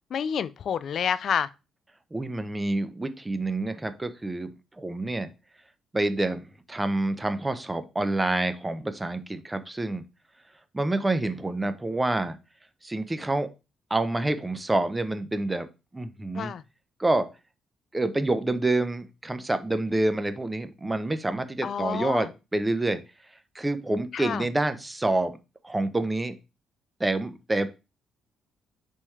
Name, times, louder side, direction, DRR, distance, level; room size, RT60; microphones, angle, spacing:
voice 1, 0.1-1.5 16.3-16.6 21.6-22.3 24.1-24.4, left 8 dB, 60° left, 0.3 m, -28 dB
voice 2, 2.1-4.5 4.8-5.3 5.9-10.0 10.7-12.4 12.8-13.5 13.9-15.7 15.9-16.5 17.0-17.3 17.9-23.0 23.5-25.4 25.6-26.3 27.0-27.7, right 2 dB, 15° right, 0.6 m, -27 dB
4.1 x 3.6 x 3.2 m
cardioid pair, 90°, 0 cm